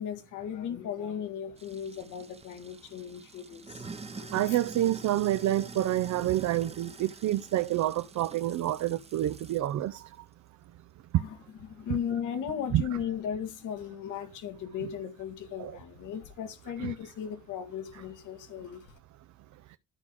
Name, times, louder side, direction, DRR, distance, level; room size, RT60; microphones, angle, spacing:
voice 1, 0.0-4.6 11.1-18.9, left 8 dB, 85° left, 1.7 m, -37 dB
Sink (filling or washing), 1.6-9.7, right 4 dB, 20° right, 0.8 m, -46 dB
voice 2, 4.3-10.1 11.1-11.2 12.7-12.8 15.6-15.8 16.8-16.9 19.7-19.8, right 13 dB, 65° right, 0.6 m, -28 dB
13.0 x 4.7 x 3.7 m
cardioid pair, 90°, 30 cm